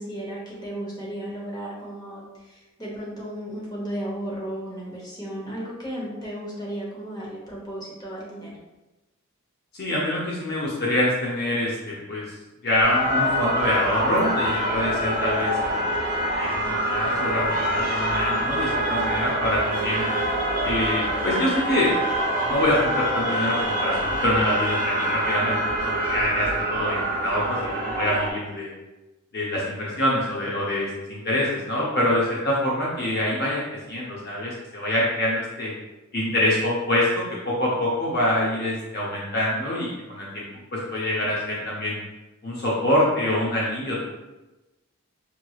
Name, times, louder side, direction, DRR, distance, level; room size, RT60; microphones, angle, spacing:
voice 1, 0.0-8.5, right 1 dB, 20° left, -5 dB, 0.9 m, -34 dB
voice 2, 9.7-12.3 12.6-16.0 16.2-20.0 20.6-21.9 22.4-28.7 29.3-33.6 33.9-35.7 36.1-40.5 40.7-42.0 42.4-44.0, left 1 dB, 45° left, -5 dB, 0.6 m, -25 dB
sound 1, 12.8-28.3, right 1 dB, 40° right, 0.7 m, -25 dB
5.0 x 3.0 x 2.3 m, 1.1 s
head